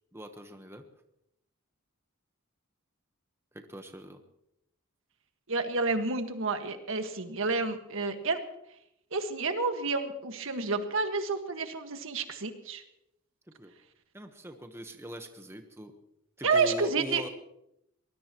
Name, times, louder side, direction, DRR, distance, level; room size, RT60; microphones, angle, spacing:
voice 1, 0.1-0.8 3.5-4.2 13.6-13.7 14.1-15.9 16.4-17.3, equal, 10° right, 6 dB, 1.1 m, -41 dB
voice 2, 5.5-8.4 9.1-12.8 16.4-17.3, right 4 dB, 65° right, 6 dB, 1.6 m, -30 dB
23.5 x 20.0 x 3.0 m, 0.81 s
head